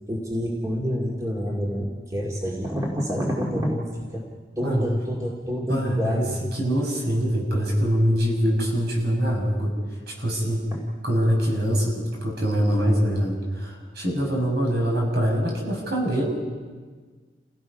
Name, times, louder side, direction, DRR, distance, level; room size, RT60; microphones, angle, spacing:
voice 1, 0.1-4.2 4.6-6.4 10.7-10.8, equal, 20° right, -2 dB, 2.2 m, -27 dB
voice 2, 5.7-6.2 6.5-9.7 10.1-10.6 11.0-16.2, equal, 65° right, -1 dB, 6.6 m, -24 dB
29.0 x 17.0 x 5.6 m, 1.5 s
head